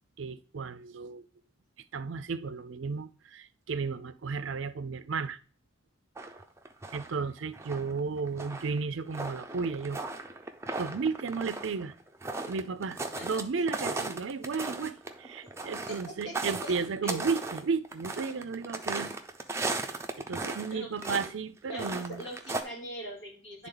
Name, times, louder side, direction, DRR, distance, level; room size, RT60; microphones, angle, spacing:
voice 1, 0.2-1.3 1.9-5.4 6.9-10.0 10.8-11.9 12.5-19.1 20.2-22.3, right 5 dB, 75° right, 0.5 m, -33 dB
sound 1, 6.2-7.2 7.5-13.4 13.7-20.7 21.0-21.3 21.7-22.6, right 3 dB, 15° right, 0.6 m, -36 dB
voice 2, 15.9-16.7 17.0-17.4 20.4-21.3 21.7-23.7, right 1 dB, 60° left, 3.1 m, -42 dB
10.5 x 3.7 x 3.9 m
head